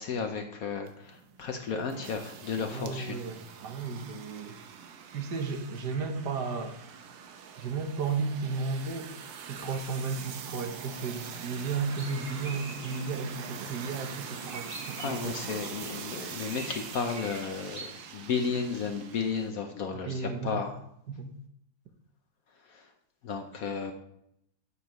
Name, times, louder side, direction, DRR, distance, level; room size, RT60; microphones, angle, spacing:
voice 1, 0.0-3.2 14.9-20.8 22.6-22.9 23.2-23.9, left 5 dB, 65° left, 5 dB, 1.0 m, -33 dB
sound 1, 0.9-19.5, right 7 dB, 80° right, 1.5 m, -44 dB
voice 2, 2.6-4.5 5.1-6.8 7.6-9.1 9.5-15.3 20.0-20.6 21.1-21.3, right 4 dB, 65° right, 6 dB, 1.5 m, -34 dB
sound 2, 9.7-18.3, right 2 dB, 35° right, 1.6 m, -48 dB
9.7 x 7.2 x 3.0 m, 0.76 s
omnidirectional pair, 2.0 m